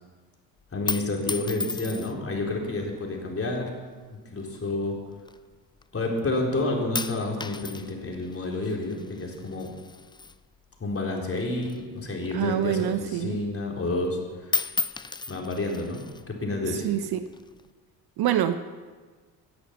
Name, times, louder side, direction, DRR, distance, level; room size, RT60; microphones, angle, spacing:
dropping a quarter on wooden floor, 0.6-2.4 3.2-3.6 4.5-5.8 6.2-6.6 7.0-11.0 11.3-13.0 13.4-13.5 13.8-14.2 14.4-16.3 17.0-17.7, left 4 dB, 10° left, 0.4 m, -35 dB
voice 1, 0.7-3.7 4.3-5.0 5.9-9.7 10.8-14.6 15.3-16.0 16.3-16.9, left 2 dB, 25° left, 0 dB, 4.1 m, -29 dB
voice 2, 12.3-13.4 16.7-17.3 18.2-18.6, right 11 dB, 50° right, 11 dB, 0.8 m, -26 dB
16.5 x 10.5 x 5.9 m, 1.4 s
hypercardioid pair, 60°, 50 cm